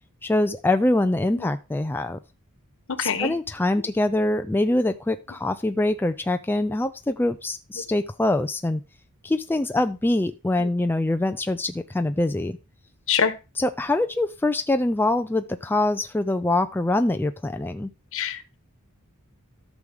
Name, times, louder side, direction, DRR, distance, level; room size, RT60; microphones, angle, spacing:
voice 1, 0.2-2.2 3.0-8.8 9.2-12.6 13.6-17.9, left 2 dB, 10° left, 7 dB, 0.4 m, -24 dB
voice 2, 2.9-3.3 10.6-10.7 13.1-13.3 18.1-18.6, left 7 dB, 65° left, 10 dB, 1.2 m, -25 dB
13.0 x 6.3 x 3.5 m, 0.29 s
head